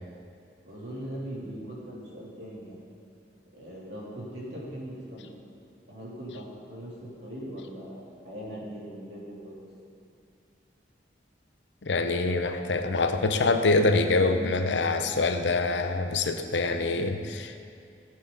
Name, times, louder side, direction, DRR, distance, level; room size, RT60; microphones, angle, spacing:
voice 1, 0.6-2.8 3.5-5.4 5.9-9.5, equal, 70° right, -6 dB, 3.1 m, -40 dB
voice 2, 11.8-17.6, left 3 dB, 80° left, 7 dB, 0.7 m, -25 dB
15.0 x 8.5 x 4.0 m, 2.4 s
head